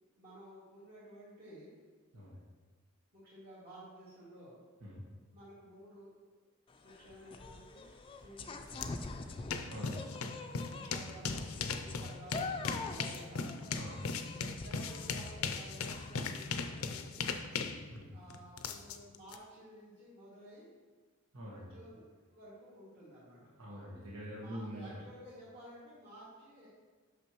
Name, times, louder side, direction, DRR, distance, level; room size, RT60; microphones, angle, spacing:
voice 1, 0.2-1.7 3.1-4.6 5.3-6.1 6.8-9.4 10.6-11.5 11.7-12.5 12.9-13.5 14.5-17.3 18.1-20.7 21.5-23.5 24.3-26.7, right 1 dB, 50° right, -12 dB, 2.2 m, -54 dB
sound 1, 6.7-16.8, left 3 dB, 25° left, 0.4 m, -46 dB
sound 2, 8.8-8.9 9.2-19.4, left 5 dB, 85° left, 0.5 m, -38 dB
voice 2, 9.7-10.2 11.7-11.8 12.7-12.9 13.7-14.1 17.9-18.1 21.3-21.7 23.6-24.9, equal, 85° right, -5 dB, 1.3 m, -45 dB
8.7 x 6.2 x 3.0 m, 1.4 s
head